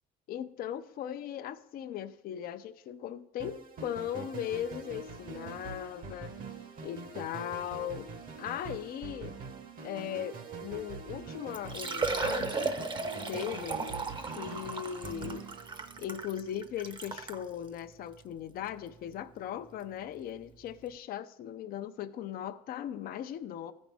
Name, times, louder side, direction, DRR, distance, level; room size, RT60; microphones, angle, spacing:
voice 1, 0.3-6.3 6.8-8.1 8.4-9.3 9.8-12.7 13.3-13.8 14.3-15.5 16.0-23.7, left 10 dB, 60° left, 10 dB, 0.5 m, -38 dB
sound 1, 3.4-16.3, right 4 dB, 55° right, 1.1 m, -44 dB
Liquid, 11.1-11.2 11.5-17.4 18.1-18.2 18.7-18.8 20.4-20.5 20.7-20.8, right 3 dB, 30° right, 0.7 m, -35 dB
14.0 x 5.2 x 3.5 m, 0.93 s
cardioid pair, 110°, 17 cm